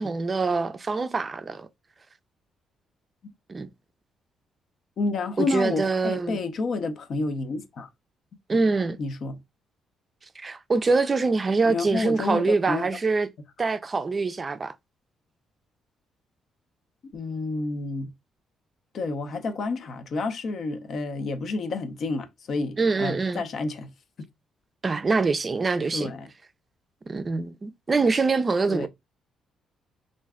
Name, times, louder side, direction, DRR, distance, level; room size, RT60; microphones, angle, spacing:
voice 1, 0.0-1.7 3.5-3.7 5.4-6.4 8.5-9.0 10.4-13.3 13.6-14.7 22.8-23.4 24.8-26.1 27.1-28.9, right 4 dB, 30° right, 0.4 m, -24 dB
voice 2, 5.0-7.9 9.0-9.4 11.6-12.9 13.6-13.7 17.1-18.1 18.9-23.9 25.9-26.3 28.7-28.9, left 3 dB, 60° left, 0.6 m, -29 dB
2.5 x 2.2 x 3.5 m
cardioid pair, 90°, 0 cm